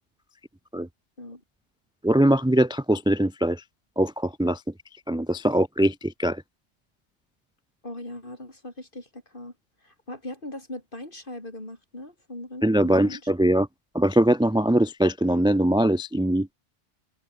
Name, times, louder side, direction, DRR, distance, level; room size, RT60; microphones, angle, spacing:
voice 1, 2.0-3.6 4.0-4.6 5.1-6.4 12.6-13.7 13.9-16.5, right 1 dB, 5° right, 0.5 m, -22 dB
voice 2, 7.8-9.5 9.8-13.3, left 1 dB, 45° left, 5.8 m, -40 dB
omnidirectional pair, 1.2 m